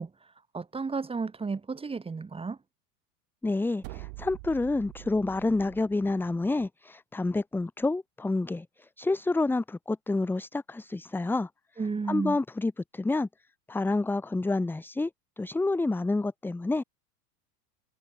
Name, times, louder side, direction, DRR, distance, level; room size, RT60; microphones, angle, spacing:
voice 1, 0.0-2.6 11.8-12.4, right 4 dB, 10° right, 1.2 m, -33 dB
voice 2, 3.4-8.7 9.0-11.5 12.1-13.3 13.7-15.1 15.4-16.8, left 2 dB, 5° left, 0.6 m, -28 dB
sound 1, 3.8-5.9, right 33 dB, 60° right, 3.5 m, -44 dB
hypercardioid pair, 105°, 49 cm